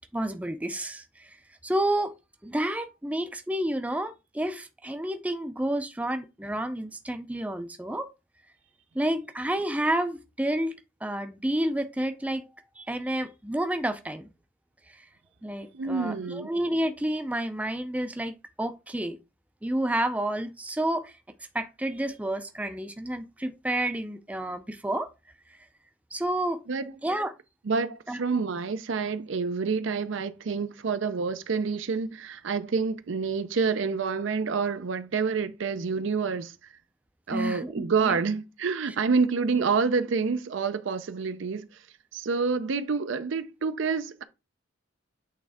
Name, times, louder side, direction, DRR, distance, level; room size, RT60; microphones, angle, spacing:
voice 1, 0.1-1.4 1.6-2.1 2.4-8.1 8.9-12.5 12.8-14.3 14.9-15.0 15.4-19.2 19.6-21.1 21.5-25.1 26.1-26.6 27.0-27.3 28.1-28.2 37.3-38.2, right 1 dB, 5° right, 0.4 m, -30 dB
voice 2, 15.7-16.5 26.7-26.9 27.7-36.6 37.3-41.8 42.1-44.2, right 5 dB, 60° right, 0.5 m, -28 dB
8.6 x 3.6 x 3.5 m
head